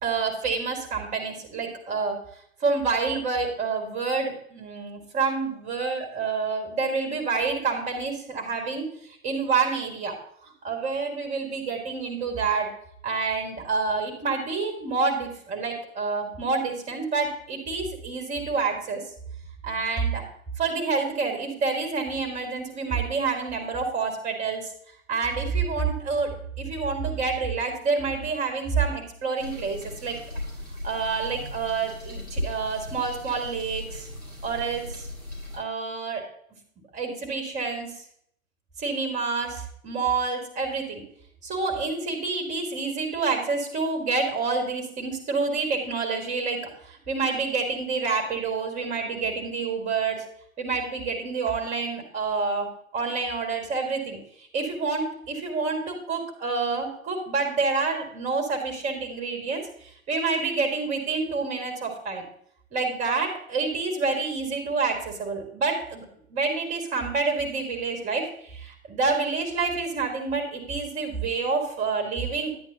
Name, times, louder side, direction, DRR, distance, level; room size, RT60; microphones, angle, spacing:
voice 1, 0.0-2.2 2.6-10.1 10.4-12.7 13.0-19.0 19.6-20.2 20.6-24.7 25.1-30.2 30.8-34.1 34.4-35.1 35.5-36.2 36.9-37.9 38.8-41.0 41.4-50.2 50.6-52.7 52.9-62.2 62.7-72.5, right 4 dB, 15° right, 4 dB, 1.6 m, -28 dB
sound 1, 29.4-35.6, left 1 dB, 90° left, 4.3 m, -37 dB
10.5 x 8.2 x 2.8 m, 0.67 s
figure-of-eight pair, 115°, 42 cm